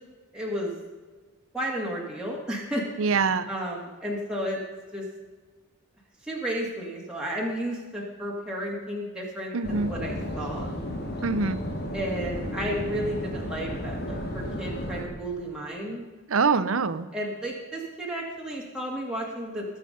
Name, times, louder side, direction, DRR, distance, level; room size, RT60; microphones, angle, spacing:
voice 1, 0.3-0.7 1.5-2.8 3.5-4.6 4.9-5.0 6.2-10.7 11.9-16.0 17.1-19.8, equal, 5° right, -3 dB, 2.1 m, -32 dB
voice 2, 3.0-3.5 9.5-9.9 11.2-11.6 16.3-17.1, right 4 dB, 70° right, 14 dB, 0.7 m, -24 dB
sound 1, 9.6-15.0, equal, 45° left, 2.1 m, -33 dB
20.0 x 7.4 x 5.2 m, 1.4 s
head